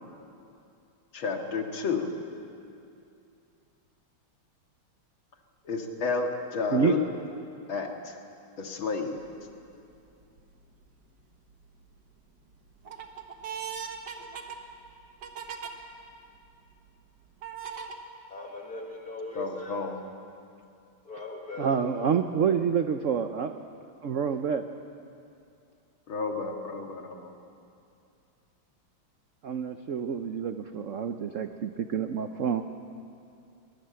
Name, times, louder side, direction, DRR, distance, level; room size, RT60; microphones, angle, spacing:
voice 1, 1.1-2.1 5.6-7.0 7.7-8.2 8.6-9.2 19.3-20.0 26.1-27.3, left 4 dB, 75° left, 3 dB, 2.7 m, -31 dB
sound 1, 9.2-9.6 10.2-10.8 11.3-12.0 12.4-15.7 16.3-16.4 17.4-17.9, right 7 dB, 55° right, 1.9 m, -39 dB
voice 2, 18.3-19.9 21.0-22.1, left 2 dB, 45° left, -1 dB, 2.5 m, -39 dB
voice 3, 21.6-23.6 24.0-24.6 29.4-32.6, right 7 dB, 70° right, 8 dB, 0.7 m, -28 dB
22.5 x 20.5 x 7.7 m, 2.6 s
omnidirectional pair, 2.3 m